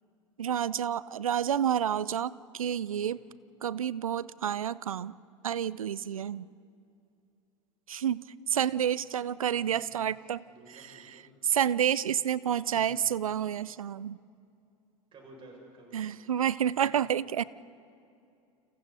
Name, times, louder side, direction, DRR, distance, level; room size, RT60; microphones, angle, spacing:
voice 1, 0.4-3.2 3.6-5.2 5.4-6.4 7.9-10.4 10.7-10.9 11.4-14.2 15.9-17.4, right 9 dB, 80° right, 20 dB, 0.5 m, -29 dB
voice 2, 3.0-3.3 8.5-8.8 9.8-10.0 10.5-11.3 12.6-12.9 15.1-16.1, right 1 dB, 30° right, -1 dB, 6.5 m, -54 dB
29.5 x 27.5 x 4.2 m, 2.6 s
figure-of-eight pair, 85°, 17 cm